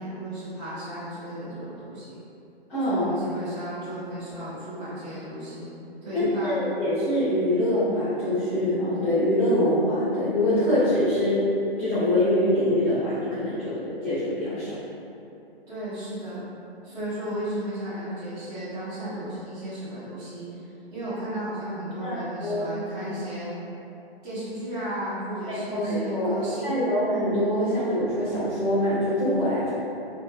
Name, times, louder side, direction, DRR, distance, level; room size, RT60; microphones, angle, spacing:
voice 1, 0.0-2.2 2.8-5.7 6.0-6.6 15.7-16.4 16.8-23.5 24.2-26.8, right 1 dB, 40° right, -12 dB, 1.5 m, -34 dB
voice 2, 2.7-3.1 6.1-11.4 11.8-14.7 22.0-23.1 25.5-29.7, left 1 dB, 5° left, -22 dB, 0.4 m, -24 dB
3.3 x 2.2 x 2.6 m, 2.9 s
hypercardioid pair, 145°, 31 cm